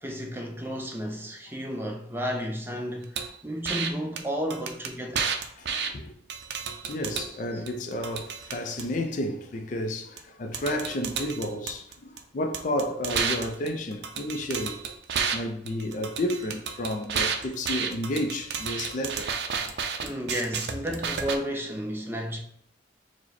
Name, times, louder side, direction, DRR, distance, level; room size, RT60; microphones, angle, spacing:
voice 1, 0.0-5.3 7.5-7.6 20.0-22.4, equal, 15° right, 0.5 m, -32 dB
sound 1, 3.2-3.3 3.7-3.9 4.2-4.3 4.5-5.9 6.3-7.3 7.7-8.8 10.2-10.3 10.5-12.2 12.5-15.4 15.7-21.4, right 6 dB, 65° right, 0.4 m, -31 dB
voice 2, 5.6-6.1 6.6-14.8 15.3-19.7, left 1 dB, 45° left, 0.4 m, -31 dB
4.7 x 2.1 x 4.1 m
head